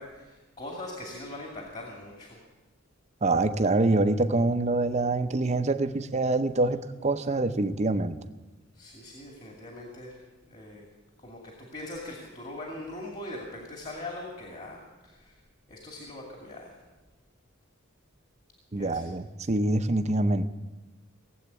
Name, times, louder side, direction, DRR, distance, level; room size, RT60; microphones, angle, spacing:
voice 1, 0.0-2.4 8.7-10.9 11.2-15.3 15.7-16.7 18.8-19.0, left 1 dB, 35° left, 0 dB, 2.4 m, -41 dB
voice 2, 3.2-8.2 18.7-20.4, right 2 dB, 35° right, 9 dB, 0.7 m, -25 dB
18.0 x 8.1 x 8.2 m, 1.2 s
head